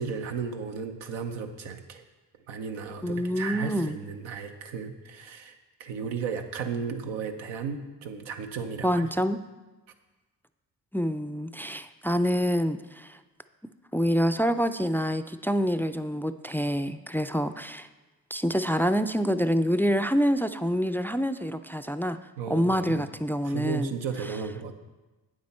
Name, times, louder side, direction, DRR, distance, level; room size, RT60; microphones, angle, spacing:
voice 1, 0.0-2.0 2.5-9.1 22.4-23.0 23.4-24.7, right 6 dB, 90° right, 6 dB, 0.8 m, -34 dB
voice 2, 3.0-3.9 8.8-9.4 10.9-13.2 13.9-17.9 18.3-22.2 22.5-24.0, equal, 5° left, 10 dB, 0.3 m, -26 dB
8.9 x 7.5 x 4.3 m, 1.2 s
supercardioid pair, 40°, 44 cm